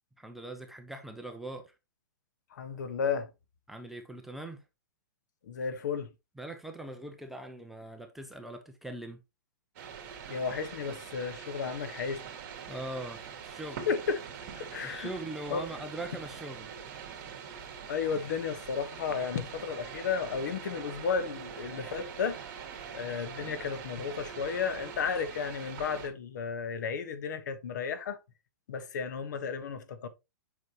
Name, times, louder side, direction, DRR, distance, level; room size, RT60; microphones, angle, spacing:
voice 1, 0.2-1.7 3.7-4.6 6.4-9.2 12.7-13.9 14.8-16.8, right 2 dB, ahead, 0.6 m, -41 dB
voice 2, 2.5-3.3 5.4-6.1 10.3-12.2 13.9-15.1 15.5-15.6 17.9-22.4 22.9-28.2 28.7-30.1, left 6 dB, 60° left, 1.3 m, -33 dB
sound 1, 9.8-26.1, right 7 dB, 45° right, 2.3 m, -44 dB
8.1 x 5.6 x 3.0 m
hypercardioid pair, 160°, 11 cm